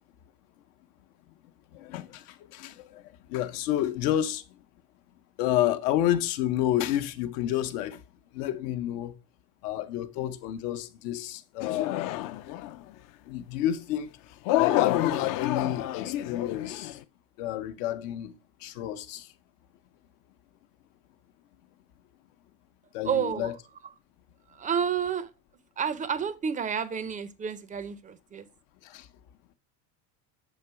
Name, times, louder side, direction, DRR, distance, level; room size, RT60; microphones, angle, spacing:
voice 1, 1.7-4.6 5.4-8.0 8.3-9.2 9.6-12.3 13.3-14.2 14.6-17.0 17.4-19.3 22.9-23.5 28.8-29.1, left 12 dB, 75° left, 0.8 m, -30 dB
sound 1, 11.6-12.8 14.5-17.0, left 14 dB, 45° left, 0.4 m, -28 dB
voice 2, 23.0-23.6 24.5-25.3 25.8-28.5, right 7 dB, 15° right, 0.4 m, -30 dB
7.4 x 2.9 x 4.4 m
supercardioid pair, 105°, 49 cm